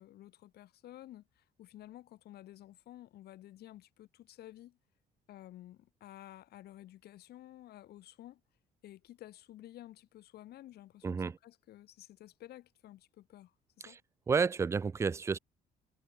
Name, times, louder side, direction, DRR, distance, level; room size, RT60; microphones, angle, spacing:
voice 1, 0.0-4.8 5.3-8.4 8.8-14.0, left 14 dB, 70° left, 4.9 m, -53 dB
voice 2, 11.0-11.4 13.8-14.0 14.3-15.4, right 5 dB, 15° right, 0.3 m, -31 dB
cardioid pair, 110°, 17 cm